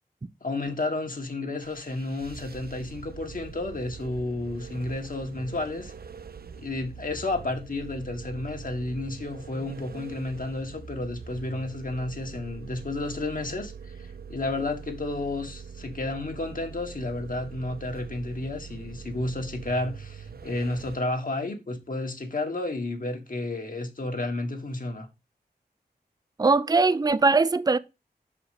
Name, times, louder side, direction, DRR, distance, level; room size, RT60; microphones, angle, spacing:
voice 1, 0.4-5.9 6.5-13.7 14.0-25.1, left 2 dB, 55° left, 1.5 m, -31 dB
sound 1, 1.6-21.0, right 6 dB, 65° right, 0.6 m, -43 dB
voice 2, 26.4-27.8, right 3 dB, 25° right, 0.4 m, -21 dB
6.3 x 4.9 x 4.8 m
wide cardioid pair, 85°, 17 cm